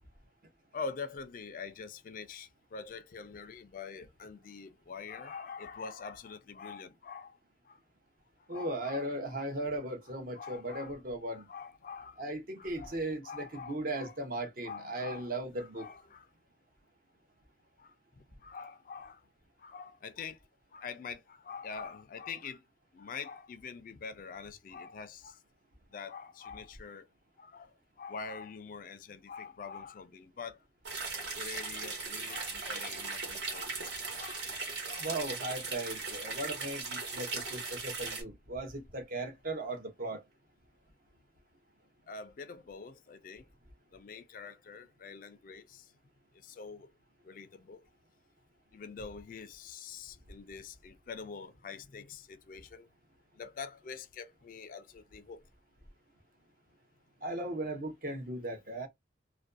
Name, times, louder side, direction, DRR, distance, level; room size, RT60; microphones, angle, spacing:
voice 1, 0.7-7.4 7.7-7.8 8.5-9.5 10.3-11.0 11.3-12.2 12.6-13.0 13.2-14.2 14.6-16.3 17.8-19.2 19.6-20.4 20.7-22.6 22.9-25.4 25.9-27.1 27.4-30.6 31.3-33.9 34.2-34.4 34.9-35.1 42.1-43.5 43.9-45.9 46.4-46.9 47.2-47.8 48.7-52.9 53.4-55.4, left 5 dB, 50° left, 0.3 m, -45 dB
voice 2, 8.5-11.5 12.2-15.9 35.0-40.2 57.2-58.9, right 1 dB, 50° right, 0.6 m, -37 dB
sound 1, 30.8-38.2, right 4 dB, 70° right, 1.2 m, -38 dB
2.5 x 2.2 x 2.4 m
head